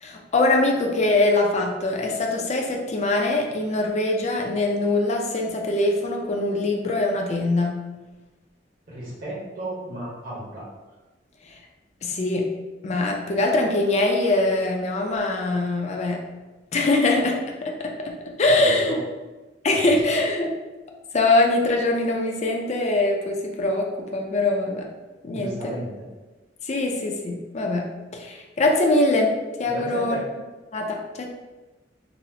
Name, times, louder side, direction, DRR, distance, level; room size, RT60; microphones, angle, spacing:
voice 1, 0.0-7.8 11.5-11.6 12.0-12.5 12.8-16.2 16.7-18.1 18.4-19.0 19.6-20.5 21.1-24.9 25.2-25.7 26.6-27.9 28.1-29.3 29.6-30.2 30.7-31.3, left 2 dB, 40° left, 1 dB, 0.4 m, -23 dB
voice 2, 8.9-10.6 18.4-19.0 19.7-19.9 25.3-26.1 29.6-30.3, right 1 dB, 50° right, -6 dB, 1.0 m, -34 dB
4.0 x 2.0 x 2.7 m, 1.2 s
head